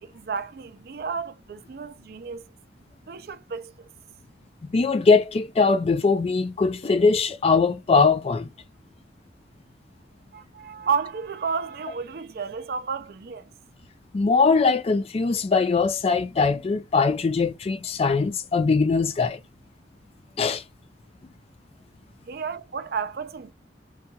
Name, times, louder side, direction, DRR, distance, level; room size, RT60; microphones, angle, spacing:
voice 1, 0.0-2.4 3.1-3.7 10.3-13.5 22.3-23.5, right 6 dB, 55° right, 0.4 m, -31 dB
voice 2, 4.6-8.5 14.1-19.4 20.4-20.6, left 4 dB, 35° left, 0.3 m, -21 dB
2.8 x 2.3 x 2.6 m
head